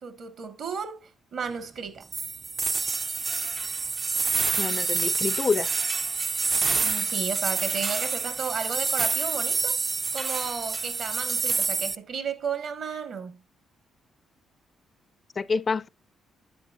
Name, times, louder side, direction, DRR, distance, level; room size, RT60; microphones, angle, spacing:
voice 1, 0.0-2.1 6.8-9.8 10.1-13.4, right 6 dB, 65° right, 1.6 m, -33 dB
sound 1, 2.1-11.9, right 4 dB, 35° right, 0.4 m, -27 dB
voice 2, 4.6-5.7 15.4-15.9, left 4 dB, 35° left, 0.4 m, -27 dB
10.0 x 8.0 x 2.5 m
cardioid pair, 90°, 0 cm